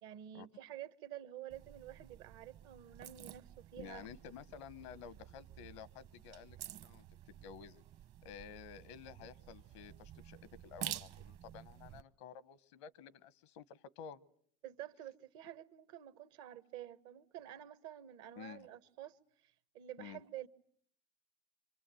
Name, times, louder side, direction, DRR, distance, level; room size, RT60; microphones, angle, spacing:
voice 1, 0.0-4.1 14.6-20.5, right 12 dB, 75° right, 1.2 m, -50 dB
sound 1, 1.5-12.0, right 12 dB, 55° right, 1.0 m, -50 dB
voice 2, 3.8-7.8 8.2-14.2 18.3-18.7 20.0-20.2, left 7 dB, 80° left, 1.0 m, -52 dB
26.0 x 25.0 x 7.6 m
supercardioid pair, 105°, 14 cm